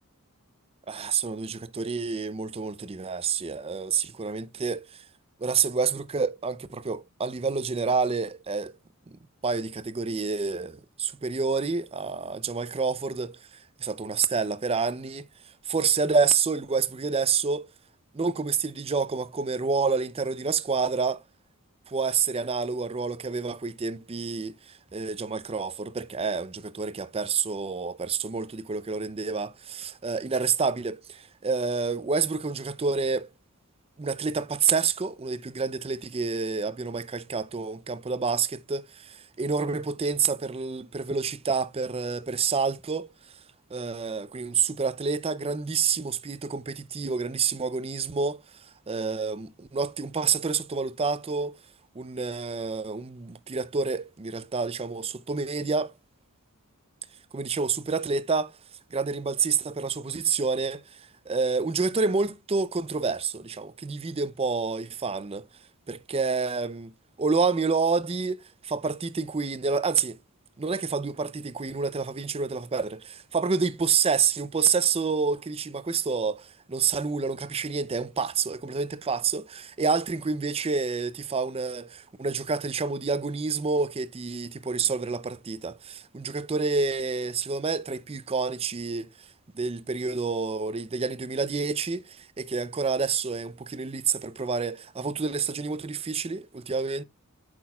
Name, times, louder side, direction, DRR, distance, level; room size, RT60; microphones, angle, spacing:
voice 1, 0.9-5.0 5.4-8.7 9.1-13.4 13.8-15.3 15.7-17.7 18.1-21.2 21.9-33.3 34.0-43.1 43.7-51.6 52.0-55.9 57.3-58.6 58.9-65.5 65.9-66.9 67.2-70.2 70.6-89.3 89.5-97.0, right 5 dB, 25° right, 0.5 m, -28 dB
8.5 x 6.0 x 2.3 m
head